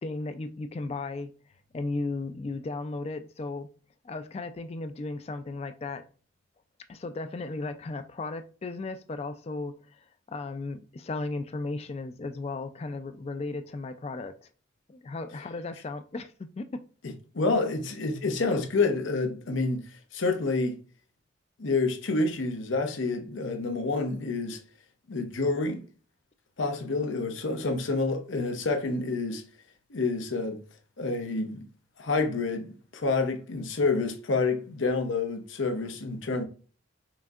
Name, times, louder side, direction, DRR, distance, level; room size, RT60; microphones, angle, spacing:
voice 1, 0.0-1.3 1.7-3.7 4.0-6.0 6.9-9.7 10.3-14.5 14.9-16.8, left 3 dB, 30° left, 0.3 m, -35 dB
voice 2, 17.3-20.8 21.6-24.6 25.1-25.8 26.6-29.4 29.9-30.6 31.0-31.6 32.0-32.7 32.9-36.4, left 3 dB, 75° left, 0.7 m, -28 dB
5.7 x 2.7 x 2.4 m
head